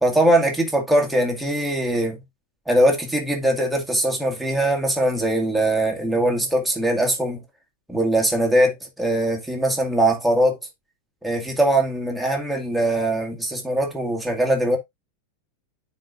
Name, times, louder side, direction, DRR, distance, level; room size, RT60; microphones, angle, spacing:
voice 1, 0.0-2.2 2.7-7.4 7.9-10.6 11.2-14.8, right 1 dB, ahead, 1.9 m, -21 dB
9.8 x 4.1 x 2.5 m
figure-of-eight pair, 90°, 0 cm